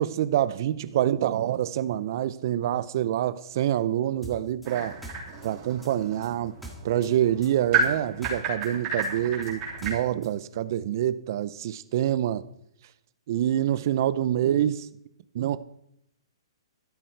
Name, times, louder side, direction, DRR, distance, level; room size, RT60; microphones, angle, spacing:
voice 1, 0.0-5.0 5.4-6.6 6.8-12.4 13.3-14.9 15.3-15.6, right 11 dB, 40° right, 0.6 m, -26 dB
sound 1, 4.2-7.1 7.4-10.3, equal, ahead, 1.7 m, -44 dB
sound 2, 4.6-9.9, right 4 dB, 25° right, 3.5 m, -32 dB
13.0 x 11.0 x 4.6 m
hypercardioid pair, 165°, 3 cm